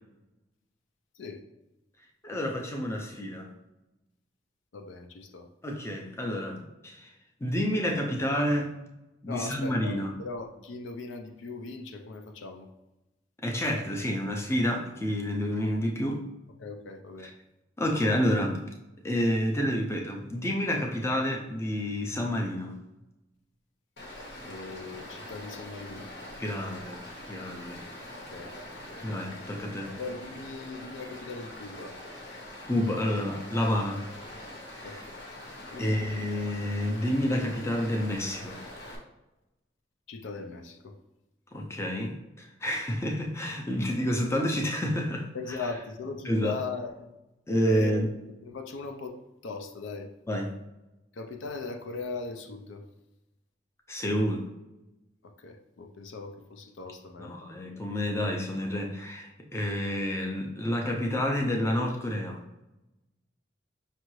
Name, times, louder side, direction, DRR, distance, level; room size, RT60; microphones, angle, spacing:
voice 1, 2.2-3.5 5.6-7.1 7.4-8.7 9.2-10.1 13.4-16.2 17.2-17.3 17.8-18.6 19.0-22.8 26.4-27.0 27.3-27.8 29.0-29.9 32.7-34.0 34.8-35.0 35.8-38.6 41.5-45.7 46.2-46.6 47.5-48.1 50.3-50.5 53.9-54.5 57.2-62.4, equal, 15° left, 0 dB, 0.4 m, -29 dB
voice 2, 4.7-5.5 9.3-12.7 16.6-17.3 24.5-26.1 28.3-28.5 28.9-29.1 30.0-31.9 34.8-35.2 35.7-36.1 40.1-41.0 45.3-47.1 47.7-47.9 48.4-49.2 49.4-50.1 51.2-52.8 55.4-57.6, left 3 dB, 75° left, 5 dB, 0.4 m, -39 dB
Stream, 24.0-39.0, left 1 dB, 55° left, 0.8 m, -44 dB
5.3 x 2.5 x 3.0 m, 0.97 s
head